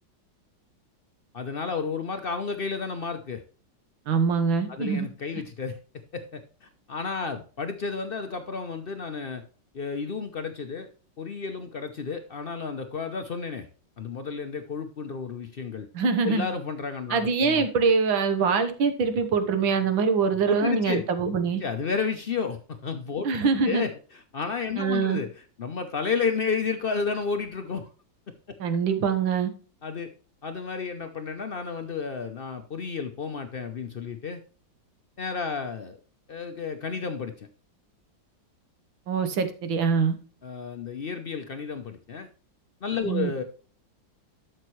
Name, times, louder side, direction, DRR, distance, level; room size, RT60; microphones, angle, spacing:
voice 1, 1.3-3.4 4.7-5.8 6.1-9.4 9.7-10.9 11.2-13.7 14.0-15.9 16.2-17.7 20.5-21.3 21.6-23.3 23.6-27.9 29.8-30.1 30.4-34.4 35.2-36.0 36.3-37.5 40.4-42.3 42.8-43.4, left 5 dB, 90° left, 7 dB, 0.5 m, -32 dB
voice 2, 4.1-5.1 15.9-16.5 17.1-21.6 23.2-23.9 24.8-25.2 28.6-29.5 39.1-40.2 43.1-43.3, right 5 dB, 90° right, 8 dB, 1.9 m, -24 dB
12.0 x 6.5 x 3.1 m, 0.38 s
omnidirectional pair, 2.1 m